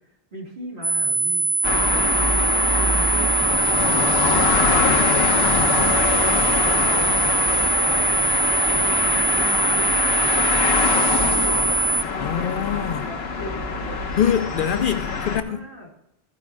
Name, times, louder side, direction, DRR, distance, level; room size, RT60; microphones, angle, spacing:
voice 1, 0.3-1.5 1.8-7.5 7.9-14.0 15.1-15.9, equal, 55° right, 3.0 m, -38 dB
sound 1, 0.8-12.0, right 3 dB, 10° right, 0.6 m, -22 dB
sound 2, 1.6-15.4, left 4 dB, 85° left, 1.2 m, -23 dB
voice 2, 12.2-13.1 14.2-15.6, left 9 dB, 60° left, 0.7 m, -24 dB
14.5 x 5.3 x 4.6 m
omnidirectional pair, 1.0 m